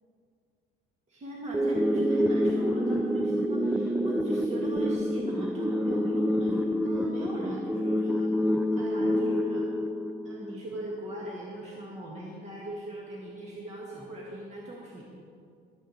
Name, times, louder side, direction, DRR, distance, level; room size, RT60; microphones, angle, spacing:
voice 1, 1.1-9.7 10.2-15.0, right 1 dB, 35° right, -3 dB, 1.9 m, -39 dB
sound 1, 1.5-10.6, equal, 5° right, 0.4 m, -27 dB
12.0 x 7.2 x 7.3 m, 2.3 s
cardioid pair, 145°, 20 cm